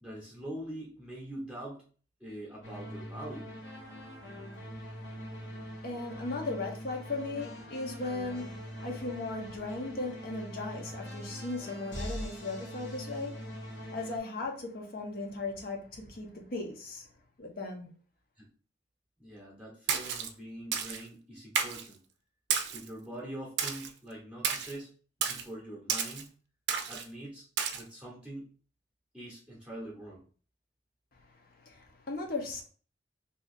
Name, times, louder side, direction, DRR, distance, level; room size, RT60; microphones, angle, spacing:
voice 1, 0.0-1.9 2.2-3.5 10.7-11.0 18.4-18.5 19.2-22.0 22.7-24.9 25.2-26.3 26.9-27.5 27.7-28.5 29.1-30.2, right 1 dB, 5° right, 0.8 m, -44 dB
sound 1, 2.6-14.2, equal, 85° left, 1.0 m, -43 dB
voice 2, 5.8-17.1 17.4-17.9 31.2-32.6, left 3 dB, 55° left, 0.7 m, -37 dB
Splash splatter, 19.9-20.3 20.7-21.0 21.6-21.9 22.5-22.9 23.6-23.9 24.4-24.7 25.2-25.4 25.9-26.2 26.7-27.0 27.6-27.8, right 7 dB, 75° right, 0.5 m, -31 dB
2.7 x 2.3 x 4.1 m
head